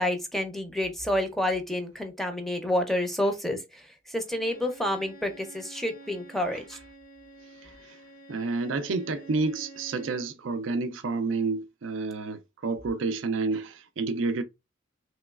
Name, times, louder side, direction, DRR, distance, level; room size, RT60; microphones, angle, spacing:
voice 1, 0.0-3.8 4.1-6.8, left 1 dB, ahead, 0.5 m, -29 dB
Bowed string instrument, 4.3-10.3, right 2 dB, 45° left, 0.6 m, -49 dB
voice 2, 7.6-8.0 8.3-14.4, right 3 dB, 70° right, 0.4 m, -30 dB
3.0 x 3.0 x 2.3 m
head